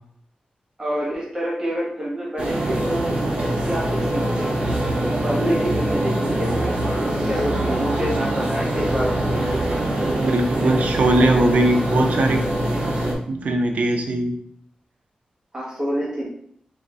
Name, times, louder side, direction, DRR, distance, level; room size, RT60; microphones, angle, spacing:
voice 1, 0.8-3.1 3.6-4.7 5.1-10.3 15.5-16.3, equal, 25° right, -5 dB, 1.7 m, -28 dB
sound 1, 2.4-13.1, right 1 dB, 50° right, 1.1 m, -23 dB
voice 2, 10.2-12.4 13.3-14.4, right 1 dB, 70° right, 3 dB, 0.6 m, -20 dB
4.0 x 2.9 x 3.8 m, 0.65 s
wide cardioid pair, 160°, 3 cm